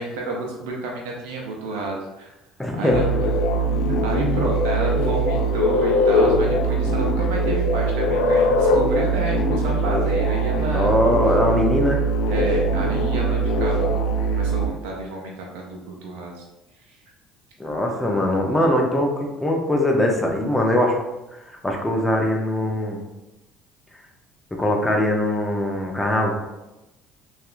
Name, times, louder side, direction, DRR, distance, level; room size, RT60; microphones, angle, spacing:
voice 1, 0.0-2.3 2.7-3.3 3.7-10.9 12.3-16.4 16.8-17.0, right 2 dB, 85° right, -1 dB, 0.4 m, -30 dB
voice 2, 2.6-3.0 10.7-12.0 17.6-21.0 21.6-23.0 24.6-26.3, left 1 dB, 10° left, 1 dB, 0.6 m, -21 dB
sound 1, 2.9-14.7, right 1 dB, 75° left, 0.3 m, -21 dB
2.8 x 2.4 x 2.4 m, 0.98 s
supercardioid pair, 80°, 0 cm